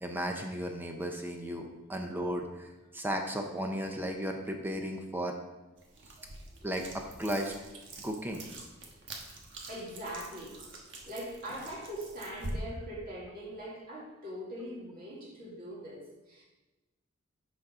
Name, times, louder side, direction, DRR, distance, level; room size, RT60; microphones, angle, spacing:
voice 1, 0.0-5.4 6.6-7.5 8.0-8.4, equal, 10° right, 3 dB, 0.6 m, -35 dB
sound 1, 5.8-12.5, right 3 dB, 65° right, 1.3 m, -47 dB
voice 2, 6.2-6.7 9.7-16.4, equal, 45° right, -5 dB, 1.9 m, -42 dB
6.2 x 5.7 x 4.9 m, 1.1 s
head